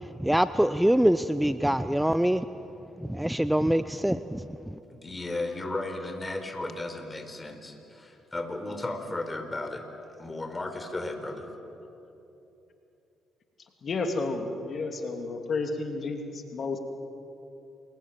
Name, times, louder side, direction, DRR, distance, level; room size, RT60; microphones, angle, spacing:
voice 1, 0.2-2.4 3.1-4.4, right 1 dB, 5° right, 13 dB, 0.7 m, -24 dB
voice 2, 4.9-9.8 10.2-11.5, left 2 dB, 25° left, 6 dB, 4.3 m, -35 dB
voice 3, 13.8-16.8, left 3 dB, 50° left, 5 dB, 2.7 m, -31 dB
29.0 x 22.0 x 7.5 m, 3.0 s
hypercardioid pair, 50°, 0 cm